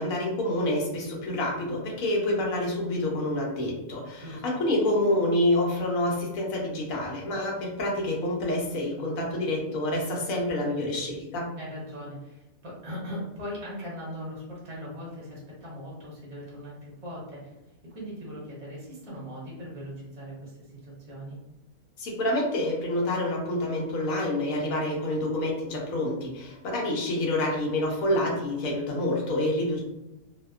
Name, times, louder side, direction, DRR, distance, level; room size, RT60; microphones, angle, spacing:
voice 1, 0.0-11.5 22.0-29.8, left 1 dB, 70° left, -1 dB, 1.1 m, -27 dB
voice 2, 4.2-4.6 11.6-17.5 17.8-21.4, equal, 30° right, -6 dB, 0.6 m, -39 dB
2.7 x 2.1 x 2.3 m, 0.96 s
omnidirectional pair, 1.6 m